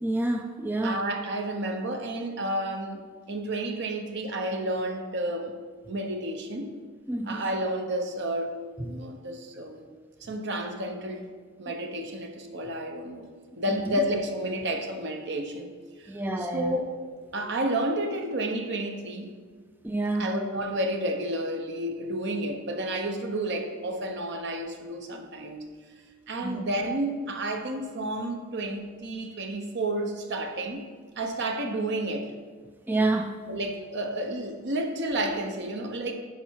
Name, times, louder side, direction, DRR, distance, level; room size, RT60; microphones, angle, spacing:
voice 1, 0.0-1.0 7.1-7.4 8.8-8.9 13.7-13.9 16.1-16.8 19.8-20.3 26.4-26.6 32.9-33.3, right 2 dB, 10° right, 4 dB, 0.3 m, -28 dB
voice 2, 0.8-5.5 5.9-6.7 7.3-8.5 8.8-9.9 10.2-11.3 11.6-13.3 13.6-15.7 16.0-16.9 17.3-19.3 20.1-25.6 26.3-30.8 31.2-32.3 33.5-36.1, right 1 dB, 55° right, 4 dB, 1.0 m, -31 dB
10.5 x 4.9 x 4.6 m, 1.5 s
head